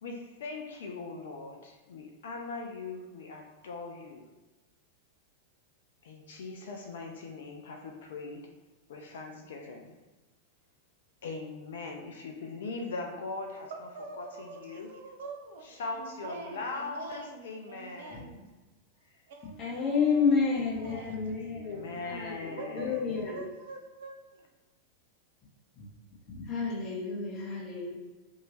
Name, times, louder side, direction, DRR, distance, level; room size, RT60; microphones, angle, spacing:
voice 1, 0.0-4.3 6.0-8.4 8.9-9.9 11.2-13.7 14.2-14.9 15.6-18.5 21.4-23.2, left 3 dB, 60° left, 3 dB, 0.3 m, -40 dB
voice 2, 13.7-18.4 19.3-21.9 22.5-24.5, right 4 dB, 55° right, 4 dB, 0.4 m, -46 dB
voice 3, 19.6-23.4 25.8-25.9 26.3-27.9, left 5 dB, 35° left, -5 dB, 0.8 m, -30 dB
2.8 x 2.7 x 2.8 m, 1.2 s
figure-of-eight pair, 90°, 0 cm